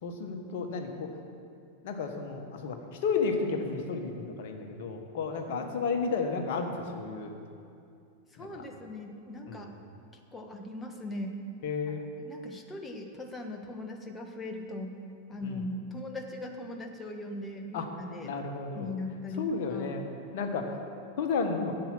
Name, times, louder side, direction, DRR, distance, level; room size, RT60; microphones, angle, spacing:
voice 1, 0.0-1.1 1.8-7.3 8.4-8.6 9.5-9.7 11.6-12.1 15.4-15.6 17.7-17.9 18.2-18.9 19.4-20.0 20.3-20.7 21.2-21.7, left 4 dB, 50° left, 4 dB, 1.4 m, -32 dB
voice 2, 5.5-5.8 8.3-9.7 10.3-11.4 12.3-15.0 15.3-18.3 18.7-19.9, left 2 dB, 15° left, 3 dB, 1.4 m, -39 dB
10.5 x 7.8 x 7.5 m, 2.5 s
figure-of-eight pair, 90°, 0 cm